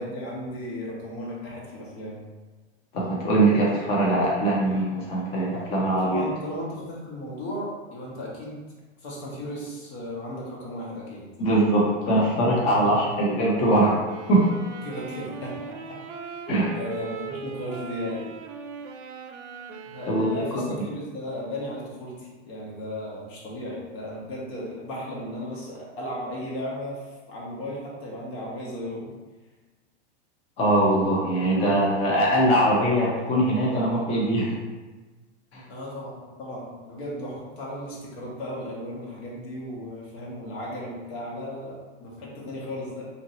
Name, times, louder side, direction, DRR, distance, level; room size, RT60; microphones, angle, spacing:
voice 1, 0.0-2.3 6.0-8.6 9.0-11.3 12.8-13.2 14.8-18.3 19.9-29.1 35.7-43.1, left 1 dB, 65° left, -4 dB, 1.2 m, -35 dB
voice 2, 2.9-6.2 11.4-14.0 14.3-14.4 16.5-16.7 20.1-20.5 30.6-34.5 35.5-35.6, right 1 dB, 20° left, -4 dB, 0.4 m, -22 dB
sound 1, 14.0-20.8, right 5 dB, 75° right, 0.5 m, -39 dB
2.9 x 2.6 x 2.7 m, 1.2 s
hypercardioid pair, 125°, 35 cm